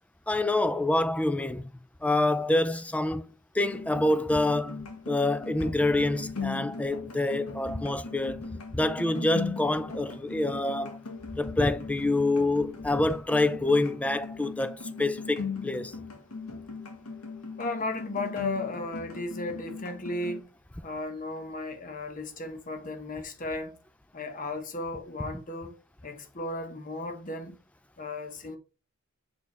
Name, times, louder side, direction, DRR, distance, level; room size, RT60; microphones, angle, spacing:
voice 1, 0.3-1.7 2.0-3.3 3.5-8.4 8.7-11.0 11.3-14.7 15.0-15.9, left 2 dB, 5° left, 0.4 m, -26 dB
sound 1, 3.6-20.4, left 4 dB, 85° left, 1.5 m, -39 dB
voice 2, 17.6-20.5 20.8-23.8 24.1-25.7 26.0-27.6 28.0-28.6, left 2 dB, 35° left, 1.1 m, -35 dB
6.9 x 4.4 x 3.4 m
head